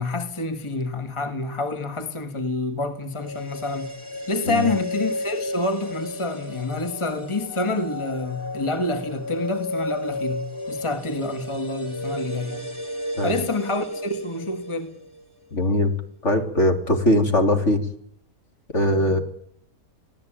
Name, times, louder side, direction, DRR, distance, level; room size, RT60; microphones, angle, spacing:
voice 1, 0.0-3.9 4.3-12.6 13.2-14.9, left 2 dB, 20° left, 1.9 m, -28 dB
sound 1, 3.1-15.3 15.5-15.6, left 1 dB, 20° right, 3.3 m, -33 dB
voice 2, 15.5-15.9 16.2-17.8 18.7-19.2, left 1 dB, 50° left, 3.4 m, -20 dB
26.0 x 17.5 x 9.0 m
omnidirectional pair, 1.6 m